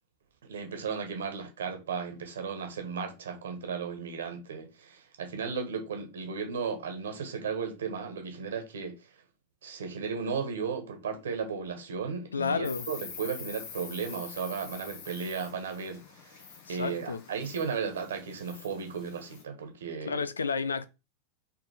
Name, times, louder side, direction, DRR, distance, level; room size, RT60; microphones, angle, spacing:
voice 1, 0.4-9.1 9.6-20.2, right 6 dB, 65° right, 1.5 m, -35 dB
voice 2, 12.3-12.9 16.7-17.2 20.1-20.9, left 5 dB, 75° left, 0.6 m, -31 dB
Insect, 12.6-19.4, left 6 dB, 50° left, 1.4 m, -46 dB
5.8 x 3.5 x 5.8 m
figure-of-eight pair, 90°, 0 cm